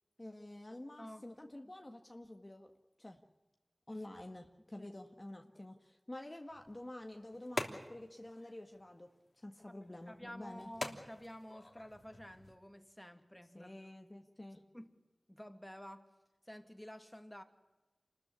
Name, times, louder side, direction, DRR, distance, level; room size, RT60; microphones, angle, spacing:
voice 1, 0.2-2.7 3.0-3.2 3.9-9.1 9.3-10.7 13.5-14.6, left 1 dB, 35° left, 4 dB, 1.8 m, -49 dB
sound 1, 6.5-12.6, left 2 dB, 55° left, 3.0 m, -47 dB
voice 2, 9.7-13.7 14.7-14.9 15.3-16.1 16.4-17.4, equal, 10° left, 7 dB, 2.5 m, -51 dB
28.0 x 14.0 x 9.9 m, 1.1 s
wide cardioid pair, 45°, 0 cm